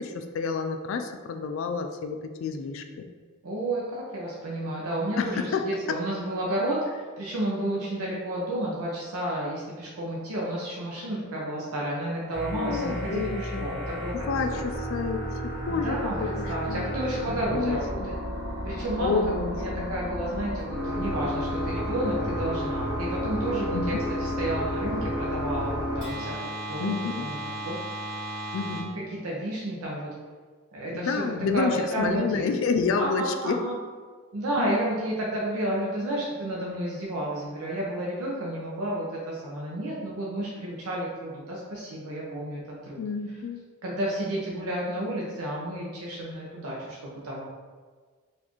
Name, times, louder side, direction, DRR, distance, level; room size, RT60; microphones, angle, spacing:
voice 1, 0.0-3.1 5.2-6.0 12.5-13.7 14.3-16.0 16.7-16.9 17.5-18.1 19.0-19.9 23.7-23.8 26.8-27.3 28.5-28.9 30.9-33.6 34.6-34.8 43.0-43.7, left 5 dB, 60° left, 6 dB, 0.3 m, -29 dB
voice 2, 3.4-14.1 14.6-14.7 15.7-18.1 18.6-26.3 26.7-27.8 28.9-30.1 30.7-32.5 33.0-33.8 34.3-43.0 43.8-47.5, right 1 dB, 85° right, -5 dB, 0.6 m, -31 dB
sound 1, 12.3-28.8, equal, 55° right, 1.2 m, -32 dB
4.0 x 2.5 x 2.9 m, 1.5 s
head